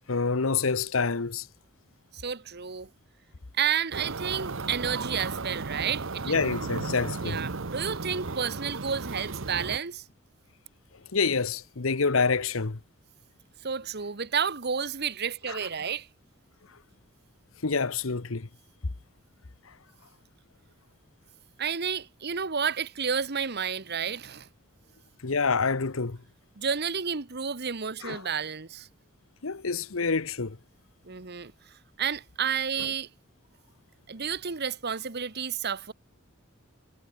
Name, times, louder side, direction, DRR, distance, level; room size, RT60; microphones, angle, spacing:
voice 1, 0.1-1.5 6.3-7.4 11.1-12.8 15.5-15.6 17.6-18.5 25.2-26.2 28.0-28.2 29.4-30.6 32.8-32.9, left 4 dB, 80° left, 1.1 m, -27 dB
voice 2, 2.1-2.9 3.6-6.3 7.2-10.0 13.6-16.1 21.6-24.5 26.6-28.9 31.0-31.5 32.0-33.1 34.1-35.9, right 7 dB, 55° right, 1.3 m, -31 dB
sound 1, 3.9-9.8, right 3 dB, 70° right, 1.1 m, -35 dB
head